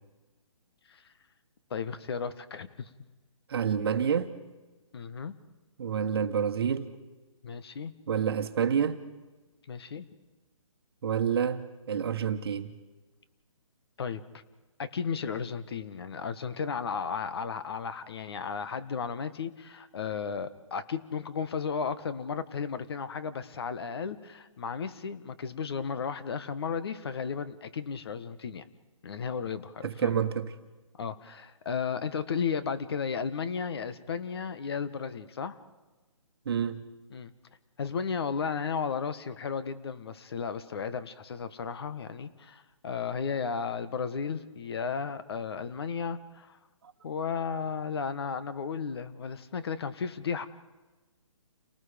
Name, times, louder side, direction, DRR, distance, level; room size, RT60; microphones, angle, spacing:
voice 1, 1.7-2.9 4.9-5.3 7.4-7.9 9.7-10.0 14.0-14.2 14.8-28.7 29.0-30.2 31.0-35.6 37.1-37.3 37.8-46.6 47.0-50.5, left 6 dB, 45° left, 1.4 m, -34 dB
voice 2, 3.5-4.4 5.8-7.0 8.1-9.0 11.0-12.7 29.8-30.5 36.4-36.8 46.8-46.9, right 7 dB, 45° right, 1.4 m, -28 dB
29.5 x 19.5 x 5.2 m
hypercardioid pair, 165°, 17 cm